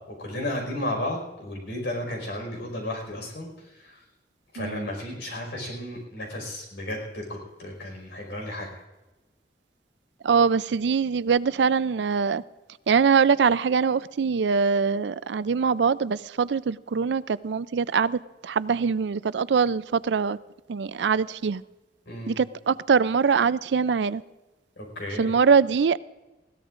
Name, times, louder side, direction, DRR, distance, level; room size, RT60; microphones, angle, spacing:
voice 1, 0.1-4.0 4.5-8.7 22.1-22.4 24.8-25.3, left 1 dB, 70° left, 5.1 m, -33 dB
voice 2, 4.6-4.9 10.2-12.4 12.9-20.4 20.7-21.6 22.3-24.2 25.2-26.0, right 6 dB, 75° right, 0.4 m, -23 dB
21.0 x 16.0 x 2.5 m
head